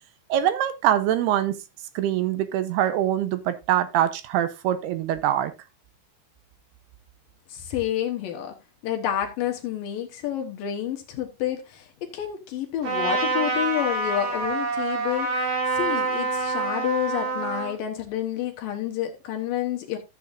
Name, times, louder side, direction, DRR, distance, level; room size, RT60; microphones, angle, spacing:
voice 1, 0.3-1.6 2.0-5.5, right 11 dB, 80° right, 2.7 m, -23 dB
voice 2, 7.5-8.5 8.8-20.0, left 11 dB, 65° left, 2.5 m, -29 dB
Trumpet, 12.8-17.8, right 3 dB, 55° right, 5.7 m, -26 dB
14.5 x 7.7 x 2.5 m
omnidirectional pair, 4.8 m